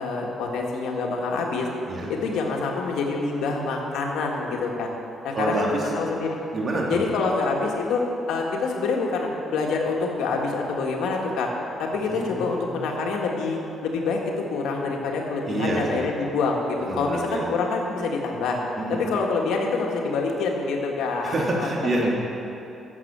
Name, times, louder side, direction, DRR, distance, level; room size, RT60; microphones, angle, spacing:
voice 1, 0.0-1.7 2.1-4.9 5.2-5.7 6.0-6.4 6.9-11.5 11.8-14.2 14.5-18.6 18.9-21.7 22.0-22.1, left 4 dB, 85° left, 0 dB, 1.8 m, -26 dB
voice 2, 5.3-5.9 6.5-7.0 12.1-13.0 15.5-16.1 16.8-17.5 18.8-19.1 21.2-22.1, right 2 dB, 45° right, -3 dB, 2.8 m, -27 dB
12.0 x 7.8 x 7.5 m, 3.0 s
cardioid pair, 90°, 0 cm